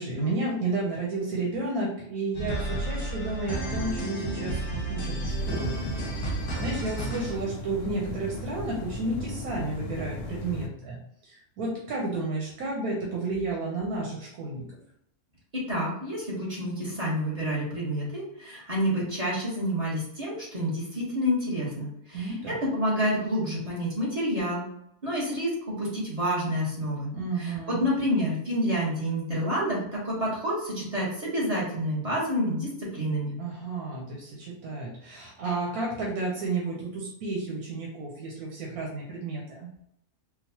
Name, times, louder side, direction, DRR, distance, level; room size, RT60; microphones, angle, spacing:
voice 1, 0.0-4.6 4.9-5.8 6.2-14.7 22.1-22.6 27.1-27.8 33.4-39.7, right 2 dB, 85° right, -2 dB, 1.2 m, -32 dB
sound 1, 2.3-7.4, right 2 dB, 30° left, 0.6 m, -31 dB
sound 2, 5.4-10.7, left 1 dB, 90° left, 1.1 m, -37 dB
voice 2, 15.5-22.3 22.6-24.6 25.0-25.5 25.8-27.1 27.4-33.3, equal, 30° right, -6 dB, 1.1 m, -28 dB
3.9 x 2.3 x 2.8 m, 0.74 s
omnidirectional pair, 1.5 m